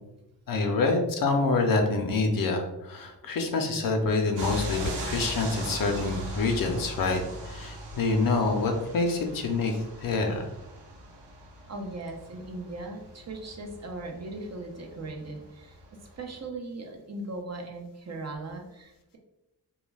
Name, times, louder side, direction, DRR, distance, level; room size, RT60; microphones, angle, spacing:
voice 1, 0.5-10.5, left 3 dB, 55° left, 4 dB, 0.6 m, -26 dB
sound 1, 4.4-16.4, equal, 75° right, 0.7 m, -40 dB
voice 2, 11.7-15.8 16.2-19.2, right 2 dB, 40° right, 2 dB, 0.6 m, -38 dB
2.2 x 2.2 x 3.2 m, 0.91 s
supercardioid pair, 50°, 42 cm